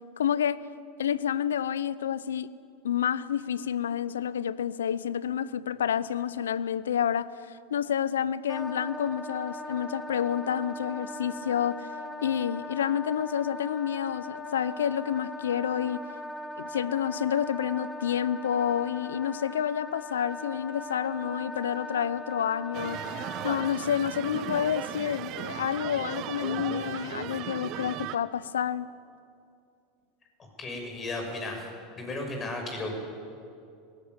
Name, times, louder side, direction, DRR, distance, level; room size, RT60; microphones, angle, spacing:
voice 1, 0.2-0.6 1.0-2.5 2.8-11.9 12.2-16.0 16.6-23.0 23.4-28.9, left 9 dB, 85° left, 0.6 m, -29 dB
Wind instrument woodwind instrument, 8.5-23.8, left 1 dB, 10° left, 1.3 m, -40 dB
sound 1, 22.7-28.2, right 12 dB, 50° right, 0.9 m, -36 dB
voice 2, 30.6-31.6 32.0-33.0, left 2 dB, 30° left, 6.3 m, -34 dB
18.5 x 16.5 x 9.4 m
hypercardioid pair, 90°, 0 cm